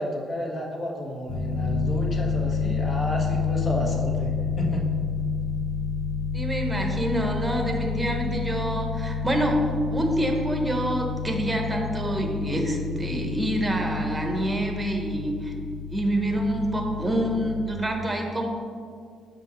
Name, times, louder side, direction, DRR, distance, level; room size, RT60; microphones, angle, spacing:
voice 1, 0.0-4.8, equal, 35° left, 0 dB, 1.5 m, -31 dB
sound 1, 1.3-17.7, left 5 dB, 75° left, 0.7 m, -29 dB
voice 2, 6.3-9.6 9.9-15.5 15.9-18.5, right 1 dB, 10° right, 2 dB, 1.1 m, -27 dB
5.7 x 5.5 x 6.8 m, 2.3 s
cardioid pair, 120°, 0 cm